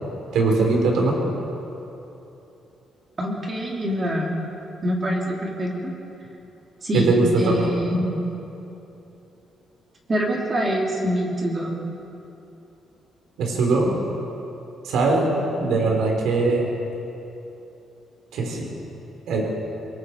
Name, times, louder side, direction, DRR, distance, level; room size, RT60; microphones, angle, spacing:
voice 1, 0.3-1.2 6.9-7.6 13.4-13.9 14.8-16.7 18.3-18.7 19.3-19.4, right 3 dB, 80° right, -1 dB, 5.0 m, -21 dB
voice 2, 3.2-4.3 4.8-5.9 6.8-7.1 7.4-8.1 10.1-11.7 15.6-15.8, equal, 25° right, -2 dB, 3.7 m, -25 dB
28.0 x 22.0 x 5.0 m, 2.9 s
cardioid pair, 165°, 0 cm